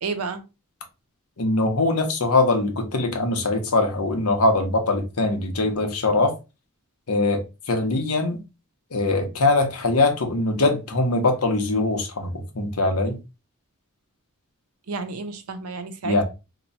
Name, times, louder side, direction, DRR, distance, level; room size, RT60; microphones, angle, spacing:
voice 1, 0.0-0.4 14.9-16.2, right 4 dB, 75° right, 0.6 m, -31 dB
voice 2, 1.4-6.3 7.1-8.4 8.9-13.2 16.0-16.2, left 2 dB, 90° left, 0.9 m, -22 dB
2.9 x 2.2 x 3.9 m
head